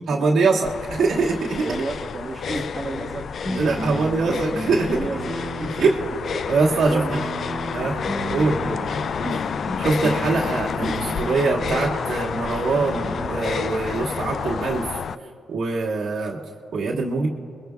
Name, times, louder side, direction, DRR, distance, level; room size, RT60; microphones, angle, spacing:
voice 1, 0.1-1.7 3.6-5.1 5.8-6.0 6.5-7.2 7.7-8.0 8.3-8.6 9.8-15.0 15.5-16.4 16.7-17.3, right 3 dB, 75° right, -3 dB, 1.8 m, -23 dB
sound 1, 0.6-15.1, left 6 dB, 60° left, 0.4 m, -30 dB
voice 2, 1.6-4.1 4.8-6.1 6.8-7.2 8.4-9.9, right 3 dB, 35° right, -1 dB, 1.6 m, -33 dB
sound 2, 2.8-13.3, equal, 10° left, 4.7 m, -33 dB
28.0 x 22.0 x 2.3 m, 2.5 s
cardioid pair, 70°, 0 cm